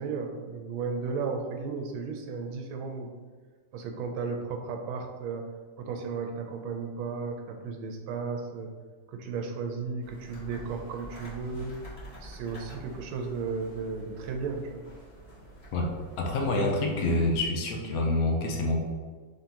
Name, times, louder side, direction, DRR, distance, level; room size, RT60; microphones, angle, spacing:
voice 1, 0.0-3.1 3.7-5.5 5.8-8.7 9.1-11.7 12.2-14.8, right 5 dB, 90° right, 3 dB, 1.4 m, -34 dB
sound 1, 10.0-17.4, right 1 dB, 30° left, 0.7 m, -48 dB
voice 2, 16.2-18.8, left 2 dB, 65° left, 0 dB, 0.9 m, -27 dB
3.9 x 3.7 x 2.8 m, 1.5 s
omnidirectional pair, 2.2 m